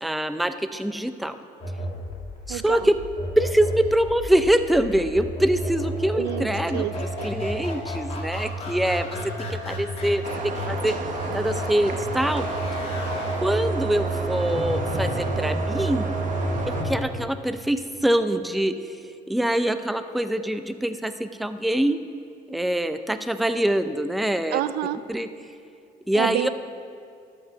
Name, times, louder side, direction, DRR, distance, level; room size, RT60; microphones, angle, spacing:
voice 1, 0.0-1.4 2.5-3.0 3.4-9.2 9.5-11.0 11.3-12.4 13.4-16.2 16.7-18.7 19.3-22.0 22.5-24.6 25.1-25.3 26.1-26.5, right 1 dB, ahead, 10 dB, 0.4 m, -24 dB
sound 1, 1.6-17.0, right 1 dB, 35° left, 2.2 m, -30 dB
voice 2, 2.5-2.9 6.1-7.3 24.5-25.0 26.1-26.5, right 14 dB, 80° right, 14 dB, 0.4 m, -29 dB
sound 2, 10.2-16.8, right 4 dB, 50° right, 0.9 m, -33 dB
12.0 x 5.4 x 6.5 m, 2.3 s
cardioid pair, 110°, 17 cm